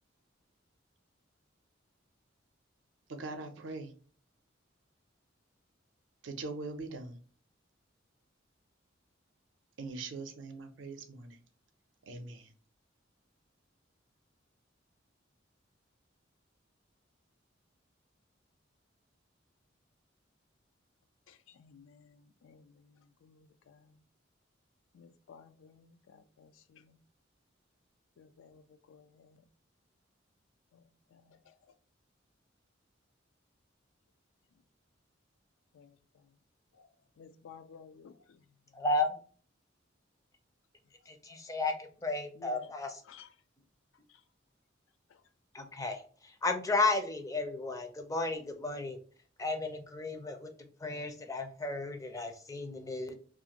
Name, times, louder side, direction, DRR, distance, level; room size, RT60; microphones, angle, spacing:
voice 1, 3.1-3.9 6.2-7.2 9.8-11.4 12.1-12.5, right 3 dB, 75° right, 6 dB, 0.5 m, -42 dB
voice 2, 21.3-24.0 24.9-27.0 28.2-28.6 28.9-29.4 30.7-31.5 35.7-35.9 36.8-36.9 37.2-38.4 42.4-42.7 43.1-43.3, left 6 dB, 85° left, 11 dB, 0.3 m, -56 dB
voice 3, 38.7-39.1 41.1-43.0 45.5-49.0 49.4-50.5 50.8-53.1, left 3 dB, 15° left, 5 dB, 0.4 m, -33 dB
2.5 x 2.4 x 2.8 m, 0.43 s
head